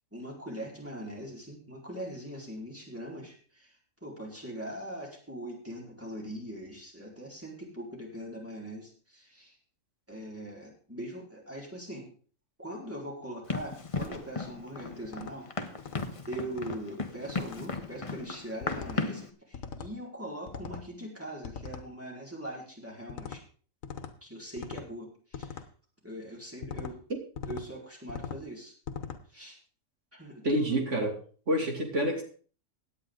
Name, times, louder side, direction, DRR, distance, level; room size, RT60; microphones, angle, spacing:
voice 1, 0.1-3.7 4.0-9.6 10.1-12.1 12.6-15.5 16.3-23.4 24.2-25.6 26.0-27.0 27.5-28.7 29.3-29.6 30.1-30.8, right 1 dB, 10° right, -2 dB, 4.4 m, -41 dB
Run, 13.5-19.3, left 3 dB, 25° left, 1.1 m, -36 dB
sound 1, 15.0-15.3 15.8-16.1 16.5-16.8 17.3-17.6 18.6-19.0 19.5-19.9 20.5-20.9 21.4-21.9 23.1-23.4 23.8-24.1 24.6-24.9 25.3-25.7 26.6-26.9 27.4-27.7 28.1-28.4 28.9-29.2, left 6 dB, 75° left, 1.5 m, -40 dB
voice 2, 30.4-31.1 31.5-32.2, equal, 65° right, 3 dB, 2.9 m, -27 dB
17.0 x 9.8 x 3.9 m, 0.42 s
omnidirectional pair, 1.4 m